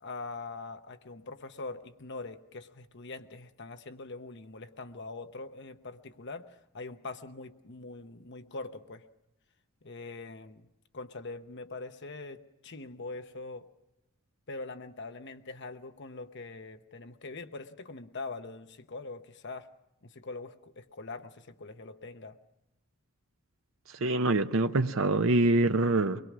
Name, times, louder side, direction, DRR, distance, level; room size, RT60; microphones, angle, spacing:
voice 1, 0.0-9.0 9.8-10.7 10.9-13.7 14.5-19.7 20.0-22.4, left 3 dB, 55° left, 0.9 m, -43 dB
voice 2, 24.0-26.2, right 2 dB, 65° right, 0.7 m, -25 dB
24.0 x 21.0 x 6.1 m
head